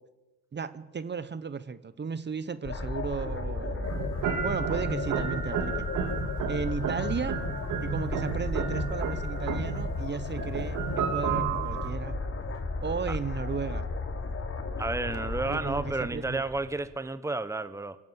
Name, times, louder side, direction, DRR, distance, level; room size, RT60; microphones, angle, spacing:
voice 1, 0.5-4.1 4.4-5.8 6.5-7.4 7.8-12.2 12.8-13.8 15.5-16.4, right 6 dB, 35° right, 1.2 m, -35 dB
sound 1, 2.6-16.9, left 3 dB, 45° left, 4.0 m, -34 dB
sound 2, 3.8-11.9, right 7 dB, 85° right, 3.2 m, -32 dB
voice 2, 14.8-18.0, right 3 dB, 10° right, 1.2 m, -31 dB
25.5 x 17.5 x 7.7 m
cardioid pair, 90°, 30 cm